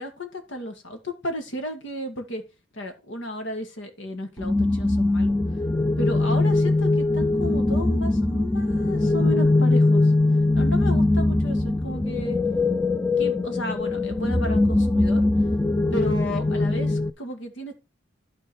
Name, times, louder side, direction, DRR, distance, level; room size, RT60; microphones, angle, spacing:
voice 1, 0.0-2.4 2.7-5.4 6.0-10.1 10.6-12.4 13.2-15.2 15.9-17.8, equal, 80° left, 5 dB, 2.1 m, -33 dB
sound 1, 4.4-17.1, left 2 dB, 10° left, 0.5 m, -21 dB
12.0 x 4.5 x 4.3 m, 0.28 s
head